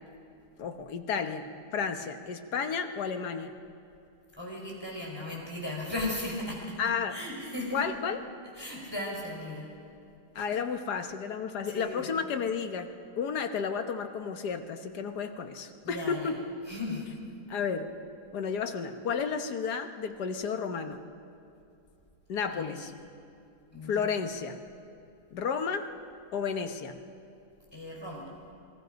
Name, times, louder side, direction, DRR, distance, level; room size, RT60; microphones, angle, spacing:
voice 1, 0.6-3.5 6.8-7.2 7.7-8.2 10.3-12.9 13.2-16.4 17.5-17.9 18.3-21.0 22.3-22.9 23.8-24.6 25.3-25.9 26.3-27.0, left 6 dB, 85° left, 7 dB, 1.7 m, -32 dB
voice 2, 4.4-6.8 7.1-7.8 8.6-9.7 11.7-12.0 15.8-16.3 16.7-17.1 22.5-22.8 23.7-24.1 27.7-28.2, left 1 dB, 15° left, -3 dB, 5.1 m, -36 dB
27.0 x 19.5 x 5.2 m, 2.6 s
omnidirectional pair, 1.7 m